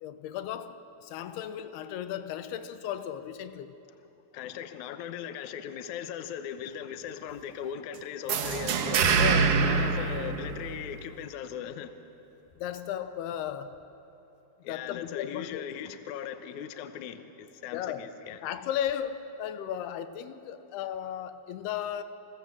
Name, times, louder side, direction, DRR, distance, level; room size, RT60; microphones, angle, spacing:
voice 1, 0.0-3.7 9.1-9.6 12.6-13.8 14.7-15.7 17.7-18.1 18.4-22.0, left 10 dB, 90° left, 2.9 m, -35 dB
voice 2, 4.3-9.2 9.6-11.9 14.6-18.4, left 9 dB, 65° left, 2.0 m, -39 dB
sound 1, 8.3-11.0, right 5 dB, 65° right, 2.7 m, -25 dB
29.0 x 20.5 x 7.5 m
omnidirectional pair, 4.5 m